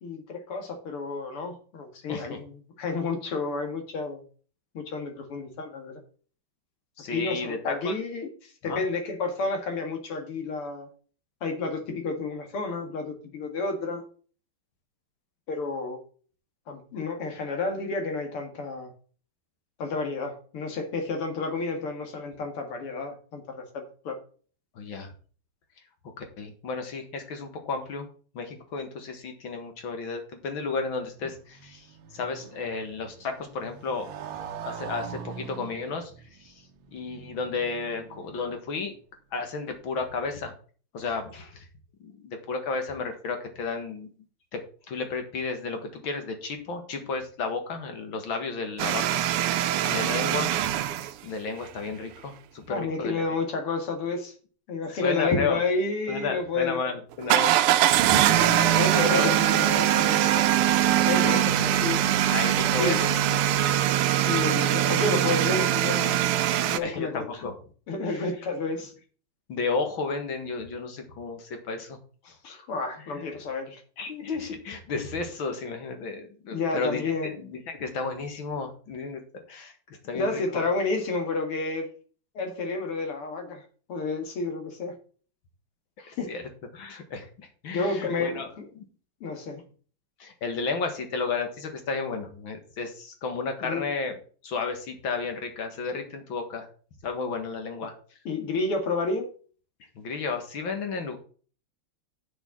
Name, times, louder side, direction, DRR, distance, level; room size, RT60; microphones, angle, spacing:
voice 1, 0.0-4.2 4.7-6.0 7.1-10.9 11.4-14.0 15.5-16.0 16.7-18.9 19.8-24.2 49.8-50.0 52.7-54.3 54.7-56.8 58.4-60.5 61.1-62.0 62.6-63.0 64.3-66.3 66.7-67.4 67.9-68.9 72.4-73.8 76.5-77.3 80.1-81.9 82.3-83.6 83.9-85.0 86.0-86.3 87.7-88.7 89.2-89.6 93.6-93.9 97.8-97.9 98.2-99.3, left 3 dB, 80° left, 4 dB, 2.8 m, -31 dB
voice 2, 2.1-2.4 7.0-8.0 8.6-8.8 24.8-25.1 26.2-28.1 28.3-31.9 32.1-34.1 34.7-36.1 36.4-36.5 36.9-38.9 39.3-40.5 40.9-41.7 42.0-44.1 44.5-44.6 44.9-49.0 49.9-50.6 51.2-53.3 55.0-55.6 56.1-57.8 58.1-59.3 61.2-61.8 62.3-63.4 66.8-67.5 68.1-68.3 69.5-72.0 72.2-72.4 74.0-79.2 79.5-80.4 86.3-86.4 86.7-88.5 88.8-88.9 90.2-94.2 94.4-96.7 97.0-97.9 100.0-101.2, left 4 dB, 65° left, 6 dB, 2.4 m, -32 dB
Motorcycle, 30.9-39.0, right 7 dB, 65° right, 1.6 m, -43 dB
sound 1, 48.8-51.1 57.2-66.8, right 12 dB, 90° right, 1.6 m, -22 dB
6.9 x 6.4 x 7.3 m, 0.41 s
omnidirectional pair, 2.4 m